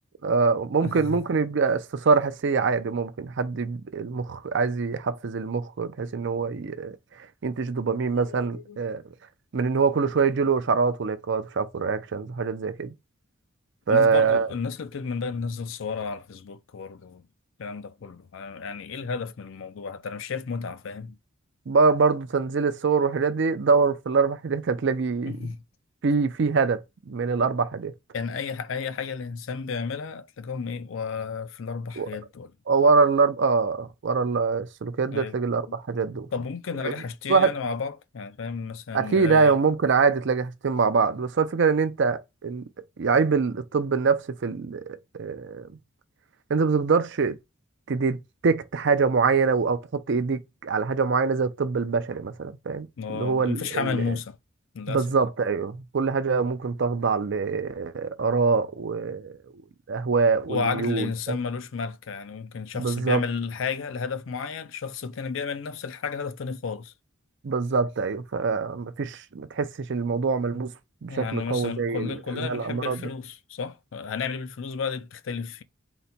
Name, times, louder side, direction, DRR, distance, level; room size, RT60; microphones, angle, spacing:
voice 1, 0.2-9.0 9.5-12.9 13.9-14.5 21.7-25.5 26.0-27.9 32.0-32.1 32.7-36.3 36.8-37.0 37.3-37.5 38.9-42.6 43.0-45.7 46.5-47.4 47.9-54.2 54.9-59.6 59.9-61.4 62.7-63.2 67.4-70.7 71.0-73.1, right 4 dB, 60° right, 0.5 m, -24 dB
voice 2, 0.8-1.2 7.4-7.5 8.1-8.8 11.8-11.9 13.9-17.2 17.6-21.2 25.2-25.6 28.1-32.5 35.1-35.4 35.7-35.8 36.3-39.6 53.0-54.4 54.7-55.0 60.5-66.9 71.1-75.6, left 5 dB, 70° left, 0.5 m, -32 dB
4.0 x 2.2 x 4.2 m
head